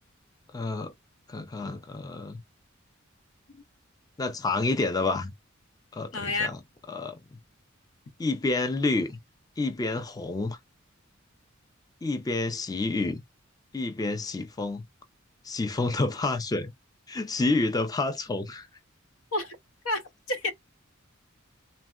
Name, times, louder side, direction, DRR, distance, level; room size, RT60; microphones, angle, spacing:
voice 1, 0.5-0.9 1.3-2.4 4.2-5.3 5.9-6.6 6.9-7.2 8.2-9.2 9.6-10.6 12.0-13.2 13.7-14.8 15.4-16.7 17.1-18.7, left 3 dB, 20° left, 0.4 m, -29 dB
voice 2, 6.1-6.5 19.3-19.6 19.8-20.0 20.3-20.5, left 2 dB, 85° left, 0.8 m, -29 dB
3.5 x 2.0 x 2.3 m
head